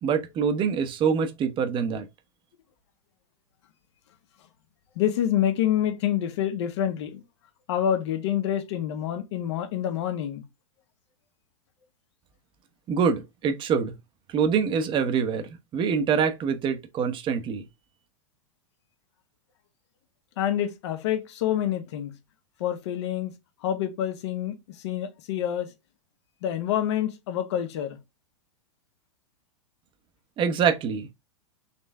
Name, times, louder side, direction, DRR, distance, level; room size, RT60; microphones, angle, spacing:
voice 1, 0.0-2.1 12.9-13.9 14.3-17.6 30.4-31.1, right 6 dB, 30° right, 0.9 m, -25 dB
voice 2, 5.0-7.2 7.7-10.4 20.4-22.1 22.6-23.3 23.6-24.5 24.8-25.7 26.4-28.0, left 10 dB, 55° left, 1.0 m, -27 dB
4.1 x 3.2 x 3.5 m
hypercardioid pair, 100°, 17 cm